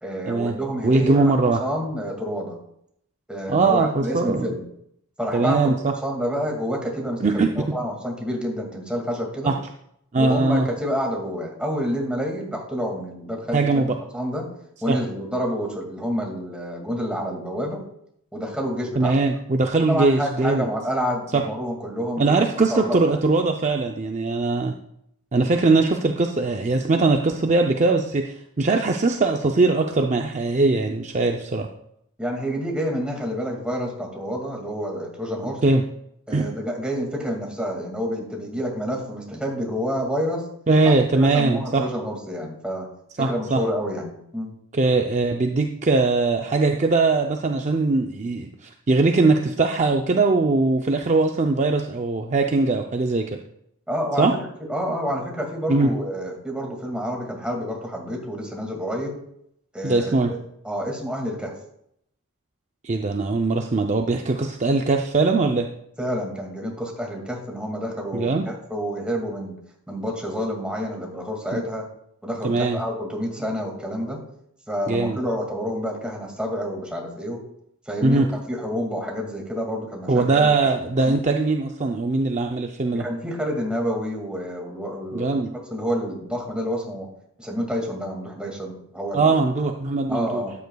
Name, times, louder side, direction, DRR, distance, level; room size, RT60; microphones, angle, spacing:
voice 1, 0.0-2.6 3.3-4.6 5.2-5.8 6.0-9.5 10.2-14.5 14.8-17.8 18.3-19.2 19.9-22.4 22.7-23.2 32.2-35.6 36.3-40.5 40.8-42.9 43.2-44.6 53.9-54.3 54.7-59.2 59.7-60.4 60.6-61.5 66.0-69.5 69.9-71.9 72.2-74.2 74.7-77.4 77.9-80.5 81.0-81.2 82.9-85.4 85.7-87.1 87.4-89.4 90.1-90.5, equal, 5° right, -1 dB, 2.1 m, -28 dB
voice 2, 0.8-1.6 3.5-4.5 5.3-5.9 7.2-7.5 9.4-9.6 10.1-10.7 13.5-13.9 14.9-15.0 19.0-20.7 21.3-21.4 22.2-24.7 25.3-31.7 35.6-35.8 36.3-36.5 40.7-41.8 43.2-43.6 44.7-53.3 54.2-54.3 55.7-55.9 59.8-60.3 62.8-65.7 68.1-68.5 71.5-71.6 72.4-72.8 74.9-75.2 78.0-78.3 80.1-83.0 85.1-85.5 89.1-90.4, right 3 dB, 35° right, 3 dB, 0.5 m, -21 dB
13.0 x 9.4 x 2.3 m, 0.73 s
head